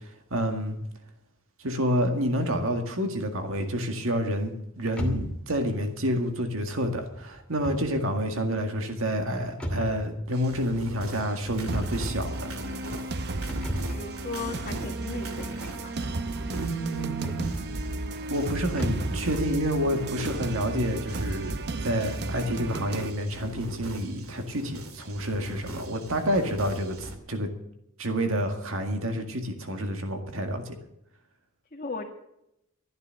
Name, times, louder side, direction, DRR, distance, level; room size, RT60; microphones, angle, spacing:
voice 1, 0.3-0.8 1.6-12.5 16.5-17.5 18.3-27.5 28.0-30.8, equal, 70° right, 5 dB, 2.0 m, -29 dB
sound 1, 4.9-19.2, equal, 5° left, 2.5 m, -39 dB
sound 2, 10.3-27.2, right 1 dB, 85° right, 2.5 m, -42 dB
sound 3, 11.7-23.1, right 2 dB, 55° right, 0.8 m, -34 dB
voice 2, 13.9-16.0 31.7-32.1, left 3 dB, 40° left, -1 dB, 1.7 m, -37 dB
13.5 x 11.0 x 6.6 m, 0.82 s
head